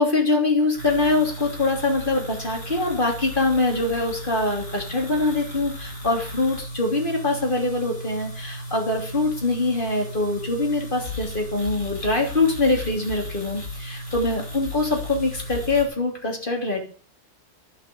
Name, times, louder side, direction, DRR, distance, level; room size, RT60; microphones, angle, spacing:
voice 1, 0.0-16.8, left 2 dB, 40° left, 1 dB, 3.3 m, -23 dB
sound 1, 0.8-15.8, left 1 dB, 60° left, 5.1 m, -36 dB
11.0 x 6.2 x 7.7 m, 0.41 s
omnidirectional pair, 1.4 m